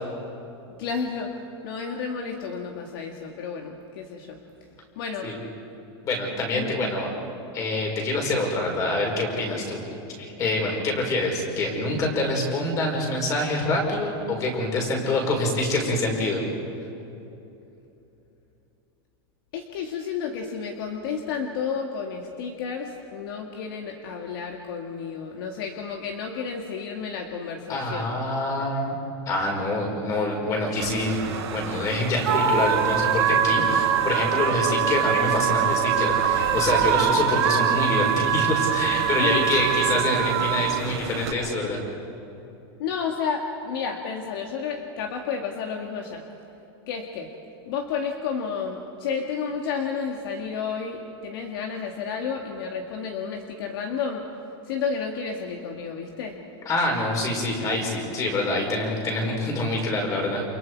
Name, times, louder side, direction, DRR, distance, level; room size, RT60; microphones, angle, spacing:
voice 1, 0.8-1.3 1.6-4.4 5.0-5.3 6.5-7.2 19.5-28.1 39.2-39.5 42.8-46.2 46.9-47.3 47.7-54.2 54.7-56.4, left 6 dB, 60° left, 2 dB, 2.1 m, -31 dB
voice 2, 6.0-7.1 7.5-9.8 10.2-16.5 27.7-29.0 29.3-41.8 56.7-60.4, left 2 dB, 25° left, 1 dB, 5.3 m, -26 dB
sound 1, 30.8-41.3, right 6 dB, 85° right, 6.3 m, -25 dB
sound 2, 32.3-40.8, right 25 dB, 40° right, 0.4 m, -27 dB
29.5 x 28.5 x 4.8 m, 2.9 s
supercardioid pair, 170°, 14 cm